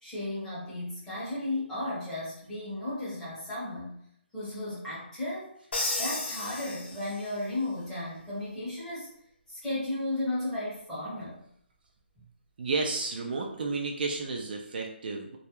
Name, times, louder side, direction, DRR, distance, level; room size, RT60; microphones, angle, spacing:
voice 1, 0.0-4.0 4.3-5.5 6.0-9.1 9.5-11.4, left 1 dB, 5° left, -10 dB, 0.7 m, -34 dB
Crash cymbal, 5.7-7.4, left 2 dB, 75° left, 0.7 m, -33 dB
voice 2, 12.6-15.4, right 3 dB, 55° right, 1 dB, 0.4 m, -32 dB
2.3 x 2.0 x 2.9 m, 0.69 s
hypercardioid pair, 165°, 6 cm